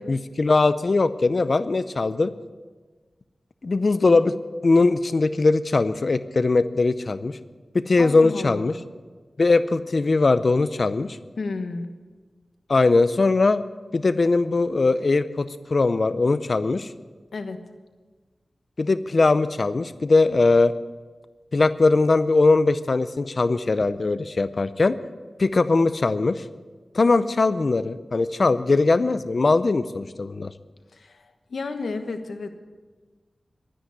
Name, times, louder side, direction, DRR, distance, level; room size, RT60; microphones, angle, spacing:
voice 1, 0.1-2.3 3.6-4.4 4.6-7.4 7.7-8.7 9.4-11.2 12.7-13.6 13.9-16.9 18.8-20.7 21.5-25.0 25.4-26.4 26.9-30.5, left 3 dB, 60° left, 14 dB, 0.5 m, -20 dB
voice 2, 8.0-8.7 11.4-11.9 17.3-17.6 30.9-32.5, left 3 dB, 90° left, 7 dB, 1.2 m, -32 dB
12.5 x 10.0 x 8.3 m, 1.4 s
wide cardioid pair, 60°, 0 cm